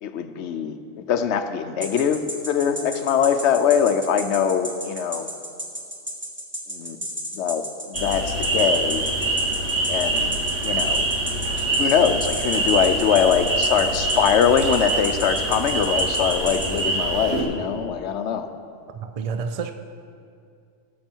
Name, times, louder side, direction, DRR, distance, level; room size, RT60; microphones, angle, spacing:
voice 1, 0.0-5.3 6.7-7.0 7.3-9.0 9.9-10.4 10.6-11.1 11.3-18.5, left 7 dB, 75° left, 9 dB, 0.9 m, -22 dB
sound 1, 1.8-16.8, equal, 10° right, 1.4 m, -32 dB
sound 2, 7.9-17.4, right 2 dB, 75° right, 2.3 m, -25 dB
voice 2, 19.0-19.7, right 5 dB, 55° right, 8 dB, 0.4 m, -28 dB
17.5 x 7.5 x 4.5 m, 2.4 s
omnidirectional pair, 1.2 m